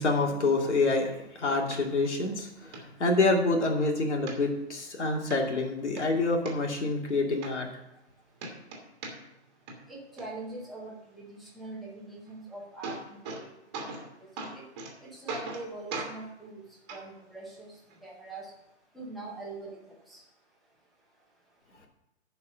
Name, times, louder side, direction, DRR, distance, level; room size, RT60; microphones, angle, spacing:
voice 1, 0.0-7.7, left 3 dB, 85° left, 1 dB, 2.6 m, -27 dB
sound 1, 1.7-1.8 2.3-2.4 2.7-2.8 3.3-3.8 4.3-4.8 5.3-5.4 5.8-6.5 7.1-7.2 7.4-8.1 8.4-9.4 9.7-10.2 12.3-12.4 12.6-13.4 13.7-14.1 14.4-14.9 15.3-15.6 15.9-16.1 16.9-17.0 17.9-18.0, right 3 dB, 25° right, 1.6 m, -39 dB
voice 2, 9.9-13.0 13.4-13.5 14.4-14.6 15.0-16.6 16.9-17.7 18.0-18.5 18.9-20.2, right 2 dB, ahead, -4 dB, 0.8 m, -42 dB
11.0 x 4.8 x 6.3 m, 0.84 s
hypercardioid pair, 170°, 34 cm